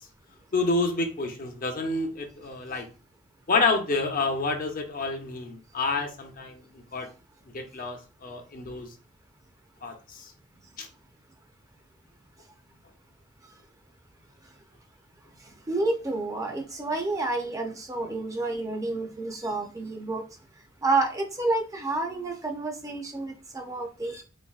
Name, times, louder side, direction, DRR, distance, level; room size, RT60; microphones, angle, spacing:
voice 1, 0.5-2.9 3.5-6.6 6.9-7.1 7.5-8.9 9.8-10.3 10.8-10.9, left 3 dB, 45° left, 5 dB, 0.6 m, -28 dB
voice 2, 15.7-20.2 20.8-24.2, right 2 dB, 15° right, 3 dB, 0.5 m, -29 dB
4.1 x 2.6 x 2.3 m, 0.34 s
head